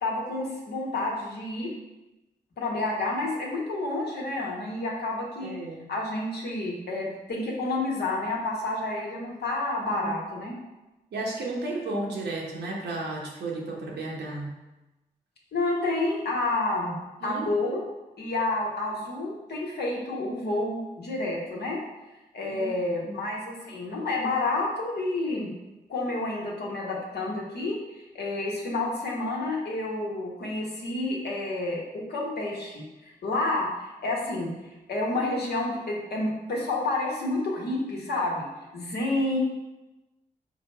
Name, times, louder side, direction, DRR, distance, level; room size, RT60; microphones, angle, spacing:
voice 1, 0.0-1.7 2.6-5.5 5.9-10.5 15.5-17.8 18.2-21.8 22.3-25.5 25.9-27.8 28.1-34.5 34.9-38.5 38.7-39.4, left 2 dB, 75° left, -2 dB, 1.1 m, -29 dB
voice 2, 5.4-5.9 10.0-10.2 11.1-14.5 17.2-17.5 22.5-23.1, right 2 dB, 80° right, -2 dB, 0.9 m, -33 dB
4.9 x 2.0 x 4.4 m, 1.0 s
supercardioid pair, 45°, 17 cm